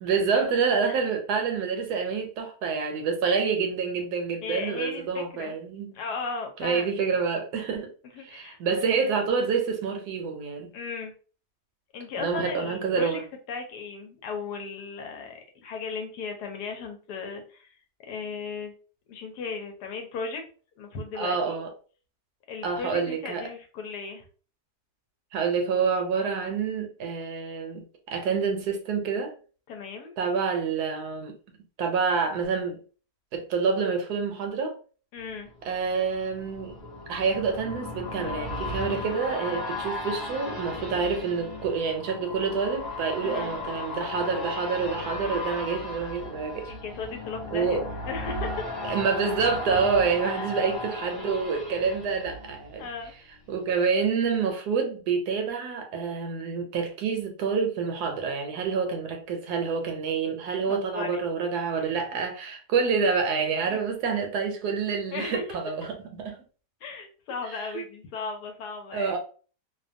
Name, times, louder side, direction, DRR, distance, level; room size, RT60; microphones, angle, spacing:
voice 1, 0.0-6.0 6.6-7.9 8.2-10.7 12.2-13.2 21.1-21.7 22.6-23.5 25.3-29.3 30.2-31.4 31.8-32.8 33.3-34.8 35.6-36.8 37.1-46.7 47.5-47.9 48.8-52.9 53.5-66.4 67.5-67.8 68.9-69.2, right 5 dB, 75° right, 1.1 m, -27 dB
voice 2, 4.4-5.6 5.9-7.0 8.1-8.6 10.7-11.1 11.9-13.2 13.5-17.7 18.1-18.7 19.1-20.4 20.8-21.6 22.5-24.2 29.7-30.1 35.1-35.5 43.2-43.5 46.7-47.8 48.1-48.7 50.2-50.5 52.8-53.1 60.7-61.2 61.7-62.0 63.7-63.8 64.0-64.2 65.1-65.4 66.8-69.2, left 5 dB, 75° left, 1.1 m, -36 dB
sound 1, 35.3-53.1 53.5-53.6, left 2 dB, 40° left, 0.8 m, -36 dB
2.7 x 2.2 x 2.5 m
omnidirectional pair, 1.8 m